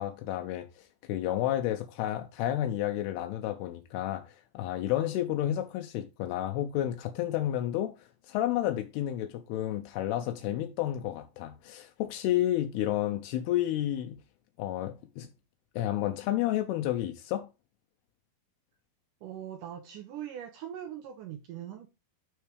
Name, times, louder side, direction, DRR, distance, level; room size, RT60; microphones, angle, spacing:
voice 1, 0.0-14.2 14.6-15.3 15.8-17.5, left 12 dB, 85° left, 2.7 m, -31 dB
voice 2, 19.2-21.9, right 10 dB, 80° right, 1.8 m, -41 dB
12.0 x 4.5 x 3.4 m
omnidirectional pair, 4.6 m